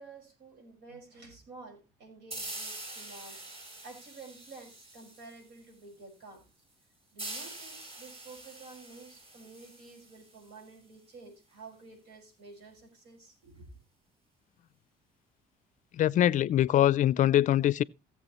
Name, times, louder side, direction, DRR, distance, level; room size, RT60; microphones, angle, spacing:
voice 1, 0.0-3.4 3.8-6.4 7.1-13.7, right 3 dB, 85° right, 5.6 m, -51 dB
sound 1, 2.3-5.7 7.2-10.7, right 2 dB, 35° right, 6.4 m, -44 dB
voice 2, 16.0-17.8, left 12 dB, 50° left, 0.4 m, -23 dB
16.5 x 7.6 x 3.0 m
cardioid pair, 110°, 17 cm